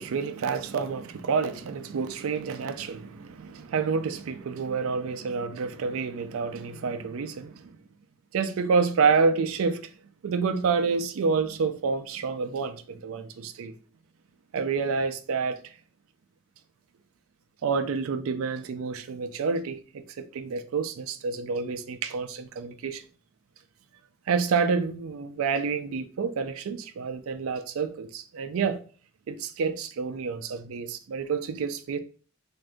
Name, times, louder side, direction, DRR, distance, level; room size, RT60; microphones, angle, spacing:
voice 1, 0.0-7.8 8.3-9.9 10.2-13.8 14.5-15.6 17.6-23.0 24.3-28.8 29.3-32.0, right 5 dB, 90° right, 0.4 m, -28 dB
3.6 x 2.6 x 3.3 m
head